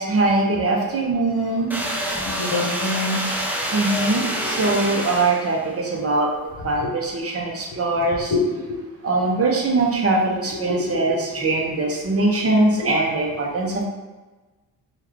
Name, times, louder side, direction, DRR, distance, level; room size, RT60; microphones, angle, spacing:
voice 1, 0.0-1.7 3.7-6.3 6.6-8.3 9.0-13.8, right 2 dB, 35° right, -1 dB, 0.7 m, -22 dB
sound 1, 1.7-5.7, equal, 5° right, 0.5 m, -27 dB
voice 2, 2.2-3.2 6.8-6.9 7.7-7.8 8.3-8.8 10.7-11.1, left 3 dB, 55° left, 0 dB, 0.8 m, -25 dB
3.1 x 2.3 x 3.5 m, 1.2 s
cardioid pair, 105°, 39 cm